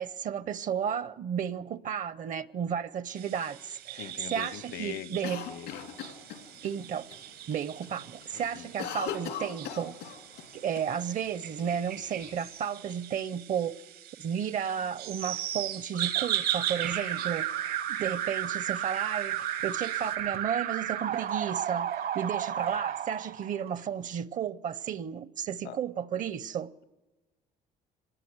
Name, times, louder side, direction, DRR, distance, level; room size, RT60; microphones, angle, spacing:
voice 1, 0.0-5.4 6.6-7.1 7.5-10.0 10.5-13.8 14.2-26.7, right 8 dB, 50° right, 0.7 m, -33 dB
sound 1, 3.2-20.1, right 12 dB, 85° right, 4.7 m, -39 dB
voice 2, 4.0-5.2 5.5-6.0 8.3-8.7 25.6-25.8, left 11 dB, 70° left, 0.9 m, -42 dB
Cough, 5.2-6.7 7.1-7.2 7.5-7.9 8.2-10.5 10.8-10.9 11.6-12.4, left 8 dB, 90° left, 2.8 m, -39 dB
Alarm, 15.9-23.8, right 10 dB, 65° right, 1.0 m, -33 dB
25.5 x 18.5 x 8.0 m
cardioid pair, 110°, 17 cm